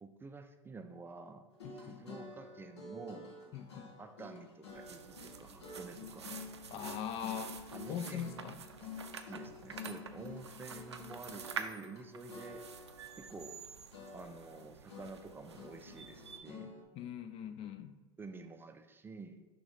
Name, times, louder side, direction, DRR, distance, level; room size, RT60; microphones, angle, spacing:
voice 1, 0.0-1.5 1.7-3.3 4.0-6.3 7.7-8.6 9.3-12.6 13.2-13.6 14.1-16.7 18.2-19.5, right 3 dB, 15° right, 7 dB, 0.4 m, -50 dB
sound 1, 1.5-12.0 12.3-13.6 13.9-16.8, left 4 dB, 75° left, 1.3 m, -50 dB
voice 2, 1.6-2.0 3.5-3.9 6.7-8.6 16.9-17.9, left 8 dB, 45° left, 10 dB, 0.5 m, -42 dB
sound 2, 4.7-16.4, right 6 dB, 90° right, 0.4 m, -48 dB
6.2 x 3.0 x 5.0 m, 1.3 s
hypercardioid pair, 85°, 14 cm